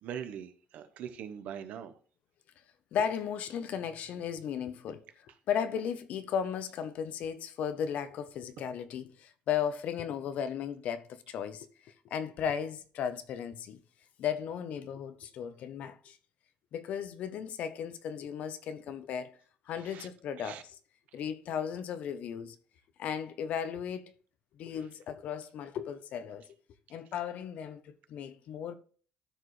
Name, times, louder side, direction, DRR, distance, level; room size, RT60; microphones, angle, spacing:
voice 1, 0.0-1.9 19.9-20.1 20.4-20.6, right 9 dB, 60° right, 0.9 m, -42 dB
voice 2, 2.9-13.8 14.2-16.2 16.7-19.4 19.7-20.8 21.1-22.6 23.0-24.1 24.6-26.4 26.9-28.7, left 8 dB, 55° left, 0.7 m, -35 dB
13.0 x 4.9 x 3.1 m
cardioid pair, 180°, 3 cm